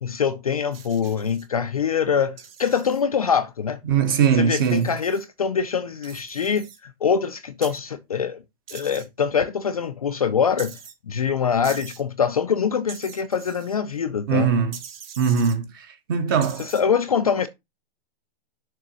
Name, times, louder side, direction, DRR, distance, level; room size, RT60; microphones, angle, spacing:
voice 1, 0.0-3.8 4.4-8.4 8.7-10.8 11.1-14.5 16.6-17.5, left 7 dB, 35° left, 0.4 m, -24 dB
sound 1, 0.7-1.5 2.4-3.0 4.5-5.2 6.0-6.8 7.6-7.8 8.7-9.0 10.6-10.9 11.6-12.0 12.9-13.8 14.7-15.6 16.4-16.8, right 8 dB, 65° right, 2.0 m, -42 dB
voice 2, 3.9-4.9 14.3-14.8 15.2-16.7, right 6 dB, 20° right, 0.7 m, -21 dB
6.7 x 3.6 x 6.0 m
hypercardioid pair, 180°, 32 cm